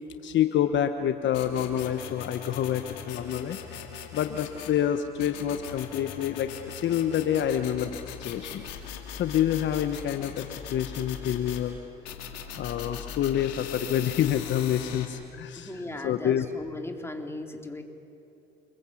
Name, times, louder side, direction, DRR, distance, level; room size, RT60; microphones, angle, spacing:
voice 1, 0.2-3.6 4.1-8.7 9.1-11.8 12.5-16.5, left 10 dB, 60° left, 8 dB, 1.2 m, -27 dB
sound 1, 1.3-4.8 5.2-11.6 12.1-15.1, left 8 dB, 90° left, 2.6 m, -40 dB
voice 2, 15.6-17.8, left 2 dB, 10° left, 3 dB, 3.9 m, -37 dB
29.0 x 22.0 x 8.5 m, 2.8 s
hypercardioid pair, 60°, 21 cm